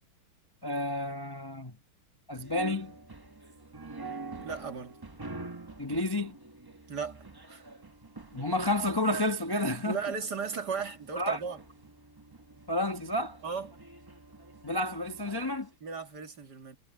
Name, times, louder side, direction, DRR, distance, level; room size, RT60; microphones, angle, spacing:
voice 1, 0.6-1.7 2.3-2.9 5.8-6.4 8.3-10.0 11.2-11.4 12.7-13.4 14.6-15.7, left 1 dB, 20° left, 0.7 m, -30 dB
sound 1, 2.4-15.6, right 3 dB, 25° right, 0.5 m, -46 dB
voice 2, 4.4-5.0 6.9-7.7 9.8-11.6 13.4-13.7 15.8-16.8, right 5 dB, 50° right, 2.7 m, -36 dB
omnidirectional pair, 2.3 m